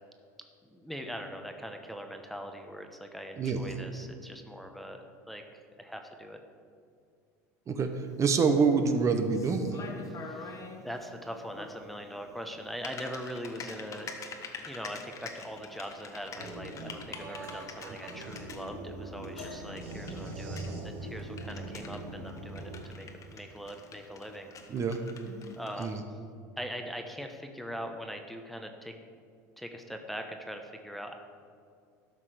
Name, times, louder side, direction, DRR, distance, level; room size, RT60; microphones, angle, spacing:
voice 1, 0.7-6.4 10.1-14.1 14.7-24.5 25.5-26.0 26.6-28.9 29.6-31.1, equal, ahead, 4 dB, 0.9 m, -42 dB
voice 2, 3.4-3.8 7.7-7.9 8.2-9.8 24.7-25.0 25.8-26.0, right 5 dB, 35° right, 6 dB, 0.9 m, -26 dB
Typing, 7.9-26.0, left 4 dB, 35° left, 1.2 m, -47 dB
sound 1, 16.4-22.8, right 2 dB, 70° right, 1.5 m, -41 dB
sound 2, 19.4-21.3 22.9-23.0 23.8-24.0 25.0-25.1, left 4 dB, 80° left, 2.0 m, -50 dB
12.0 x 5.8 x 5.0 m, 2.3 s
hypercardioid pair, 90°, 9 cm